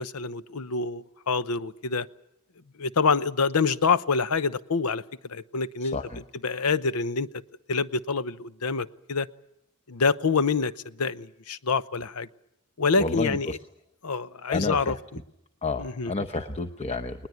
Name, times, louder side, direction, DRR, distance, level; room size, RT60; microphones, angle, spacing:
voice 1, 0.0-2.1 2.8-5.0 5.3-6.0 6.4-7.3 7.7-9.3 9.9-10.7 11.0-12.3 12.8-13.6 14.0-14.9 15.8-16.1, left 4 dB, 90° left, 15 dB, 0.8 m, -26 dB
voice 2, 5.8-6.2 13.0-13.6 14.5-15.0 15.6-17.3, left 3 dB, 30° left, 6 dB, 0.9 m, -30 dB
20.5 x 20.0 x 9.3 m, 0.84 s
head